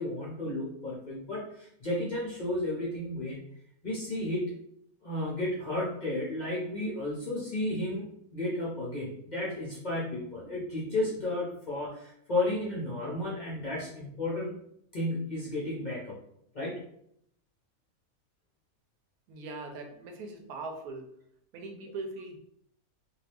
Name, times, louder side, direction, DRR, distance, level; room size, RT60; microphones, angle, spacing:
voice 1, 0.0-3.4 3.8-4.5 5.0-8.1 8.3-14.6 14.9-16.2 16.5-16.8, left 1 dB, 50° left, -6 dB, 0.5 m, -33 dB
voice 2, 19.3-21.1 21.5-22.4, right 3 dB, 85° right, 4 dB, 1.1 m, -40 dB
2.7 x 2.3 x 3.2 m, 0.72 s
omnidirectional pair, 1.5 m